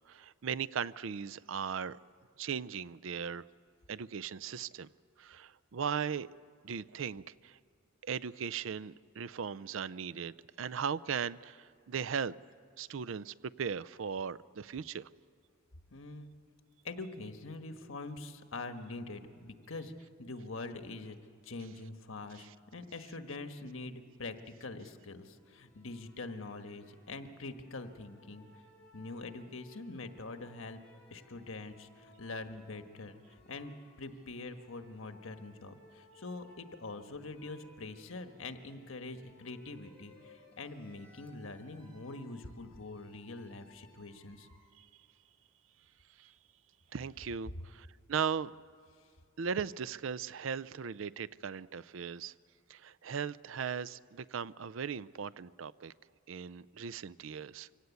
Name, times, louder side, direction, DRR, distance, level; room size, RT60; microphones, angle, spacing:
voice 1, 0.1-2.0 2.4-3.5 3.9-4.9 5.2-6.3 6.6-7.6 8.0-12.3 12.8-15.1 22.4-22.5 44.8-44.9 46.2-46.3 46.9-48.5 49.4-52.3 52.7-55.9 56.3-57.7, right 7 dB, 65° right, 19 dB, 0.5 m, -38 dB
voice 2, 15.9-16.3 16.8-19.9 20.2-21.2 21.4-24.3 24.6-28.5 28.9-30.8 31.1-33.7 34.0-44.5, left 3 dB, 75° left, 7 dB, 1.4 m, -44 dB
sound 1, 25.4-44.7, left 1 dB, 5° left, 5.1 m, -62 dB
24.5 x 17.5 x 8.3 m, 2.2 s
head